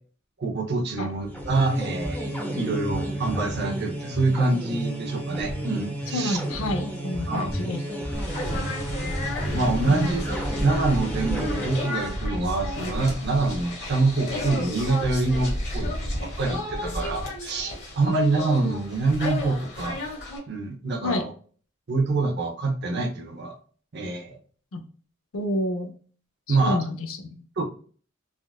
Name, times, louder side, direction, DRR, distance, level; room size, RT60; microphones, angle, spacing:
voice 1, 0.4-6.4 7.3-7.5 9.5-15.9 16.2-20.0 20.5-21.3 21.9-23.6 23.9-24.4 26.5-26.8 27.6-27.7, right 3 dB, 55° right, 3 dB, 0.6 m, -26 dB
sound 1, 1.2-12.2, right 1 dB, 10° left, 0.6 m, -32 dB
voice 2, 6.1-7.8 9.9-10.2 21.0-21.2 24.7-24.8 25.3-25.9 26.5-27.6, left 1 dB, 85° left, 6 dB, 0.5 m, -29 dB
sound 2, 8.1-20.4, left 1 dB, 55° left, 1.1 m, -32 dB
3.6 x 2.4 x 2.3 m, 0.43 s
head